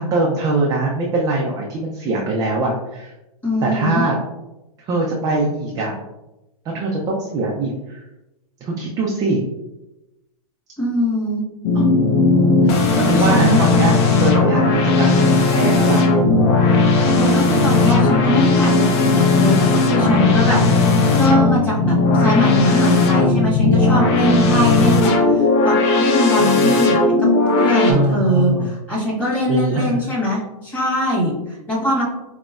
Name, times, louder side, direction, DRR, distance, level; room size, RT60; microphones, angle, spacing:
voice 1, 0.0-3.1 3.6-4.2 4.9-5.9 6.7-8.0 8.6-9.4 11.7-11.8 12.7-12.8 13.0-13.9 14.2-16.0 20.6-20.9 26.4-26.7 27.9-28.7 29.5-30.1, right 3 dB, 20° right, -2 dB, 0.4 m, -22 dB
voice 2, 3.4-4.0 10.8-11.4 12.7-13.7 17.0-20.6 21.1-27.1 27.6-32.0, left 1 dB, 10° left, -8 dB, 1.3 m, -21 dB
sound 1, 11.6-27.9, left 3 dB, 50° left, 0.6 m, -16 dB
5.0 x 2.1 x 2.3 m, 0.97 s
hypercardioid pair, 140°, 19 cm